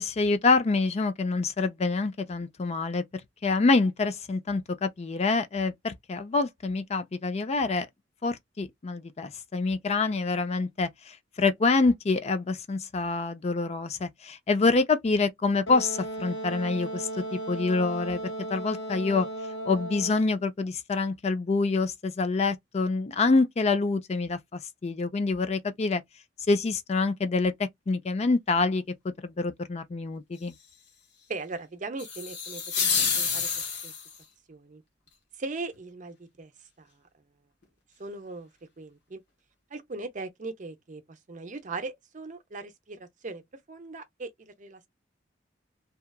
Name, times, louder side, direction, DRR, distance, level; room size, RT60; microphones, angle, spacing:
voice 1, 0.0-3.0 3.4-7.9 8.2-18.2 18.5-19.3 19.7-26.0 26.5-30.5, left 3 dB, 35° left, 0.4 m, -26 dB
Wind instrument woodwind instrument, 15.7-20.4, right 1 dB, 90° left, 1.1 m, -36 dB
voice 2, 31.3-32.9 33.1-33.5 33.8-33.9 34.5-34.8 35.4-36.5 36.8-36.9 38.0-38.5 38.8-39.2 39.7-43.4 43.7-44.9, right 3 dB, 45° right, 0.6 m, -39 dB
sound 1, 32.0-34.2, left 6 dB, 65° left, 1.2 m, -28 dB
2.8 x 2.3 x 2.2 m
head